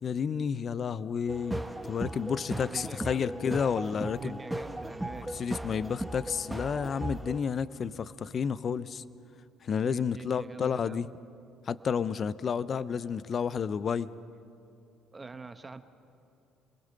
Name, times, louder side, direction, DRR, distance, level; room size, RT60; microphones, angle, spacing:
voice 1, 0.0-4.4 5.3-9.0 9.6-11.1 11.7-14.1, left 6 dB, 45° left, 17 dB, 0.6 m, -31 dB
sound 1, 1.3-7.4, right 1 dB, 5° right, 1.3 m, -37 dB
voice 2, 2.5-3.5 4.1-5.3 9.8-11.1 15.1-15.8, right 4 dB, 25° right, 9 dB, 1.3 m, -44 dB
27.5 x 20.5 x 6.6 m, 2.7 s
hypercardioid pair, 60°, 0 cm